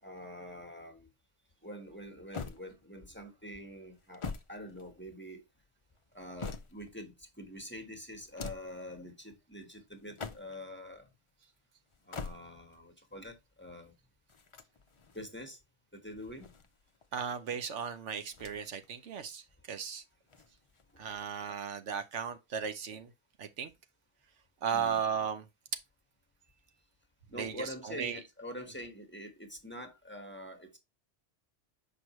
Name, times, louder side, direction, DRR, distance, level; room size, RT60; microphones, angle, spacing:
voice 1, 0.0-1.1 1.6-5.4 6.1-11.1 12.1-13.9 15.1-15.6 15.9-16.5 24.7-25.0 27.3-30.8, equal, 10° left, 1.2 m, -45 dB
sound 1, 2.3-3.1 3.9-5.3 6.0-7.0 8.2-8.8 10.0-10.7 11.9-12.8 14.3-15.3 16.2-17.1 18.3-18.9 19.2-19.3 20.3-21.1, left 4 dB, 40° left, 0.4 m, -45 dB
voice 2, 17.1-20.0 21.0-23.1 23.4-23.7 24.6-25.5 27.3-28.2, right 7 dB, 80° right, 1.1 m, -36 dB
6.2 x 5.2 x 3.0 m
omnidirectional pair, 1.2 m